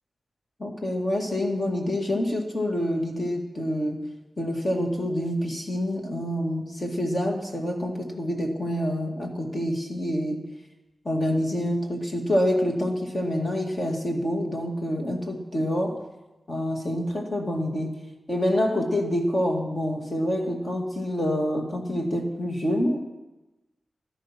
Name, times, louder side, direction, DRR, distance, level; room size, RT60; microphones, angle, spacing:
voice 1, 0.6-4.1 4.4-10.4 11.1-16.0 16.5-18.0 18.3-23.0, equal, 30° left, 2 dB, 2.0 m, -27 dB
15.0 x 12.5 x 5.9 m, 1.0 s
wide cardioid pair, 155°, 0 cm